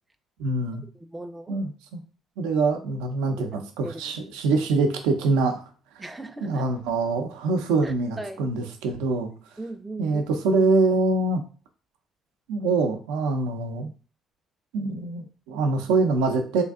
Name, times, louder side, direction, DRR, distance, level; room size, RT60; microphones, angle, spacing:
voice 1, 0.4-0.8 1.5-2.0 2.4-5.6 6.0-6.1 6.4-9.3 10.0-11.4 12.5-13.9 14.7-16.6, right 3 dB, 90° right, 6 dB, 0.5 m, -24 dB
voice 2, 1.0-1.6 3.5-4.0 6.0-6.7 7.8-8.5 9.6-10.2, right 2 dB, 15° right, 6 dB, 0.3 m, -38 dB
3.2 x 2.6 x 3.5 m, 0.39 s
supercardioid pair, 70°, 0 cm